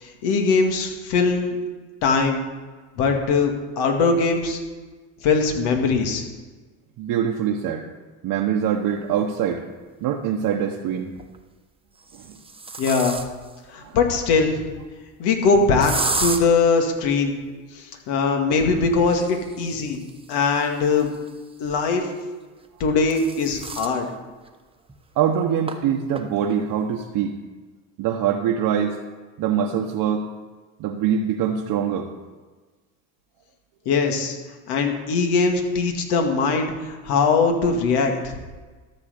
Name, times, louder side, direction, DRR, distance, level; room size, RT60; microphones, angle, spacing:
voice 1, 0.0-1.6 2.0-2.4 3.0-4.6 5.2-6.2 12.8-13.2 13.7-14.6 15.2-15.9 16.2-17.3 17.7-20.0 20.3-21.1 21.6-22.1 22.8-24.1 33.9-34.4 34.7-38.1, left 4 dB, 70° left, 3 dB, 2.3 m, -21 dB
voice 2, 7.0-7.8 8.2-9.6 10.0-11.1 25.2-27.3 28.0-28.9 29.4-30.3 30.8-32.1, right 8 dB, 60° right, 1 dB, 1.1 m, -23 dB
sound 1, 9.5-9.6 11.0-11.4 12.0-13.6 15.8-16.4 19.0-21.6 22.6-24.0 24.5-24.6 24.9-25.0 25.7-25.8 26.2-26.5, right 3 dB, 15° right, 1.2 m, -32 dB
13.0 x 6.1 x 6.9 m, 1.3 s
supercardioid pair, 85°, 41 cm